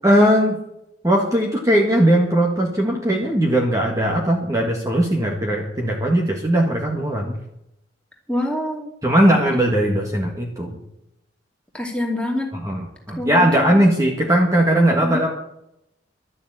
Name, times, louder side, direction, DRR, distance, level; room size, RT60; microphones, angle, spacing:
voice 1, 0.0-0.6 1.0-7.3 9.0-10.8 12.6-15.3, right 1 dB, 20° right, -1 dB, 1.7 m, -19 dB
voice 2, 8.3-8.9 11.7-12.5 13.2-13.8 15.0-15.2, left 1 dB, 5° left, -1 dB, 2.7 m, -25 dB
12.5 x 7.0 x 9.0 m, 0.81 s
head